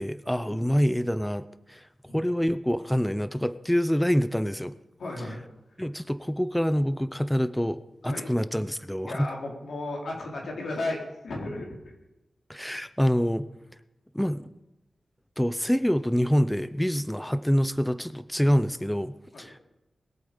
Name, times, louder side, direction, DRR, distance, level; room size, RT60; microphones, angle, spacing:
voice 1, 0.0-1.8 2.1-4.7 5.8-9.3 12.5-13.5 14.1-14.4 15.4-19.6, equal, 5° left, 14 dB, 0.6 m, -26 dB
voice 2, 5.0-5.4 8.1-8.3 9.1-11.7 19.3-19.5, left 2 dB, 80° left, -2 dB, 4.5 m, -34 dB
21.5 x 8.4 x 5.7 m, 0.97 s
wide cardioid pair, 115°, 0 cm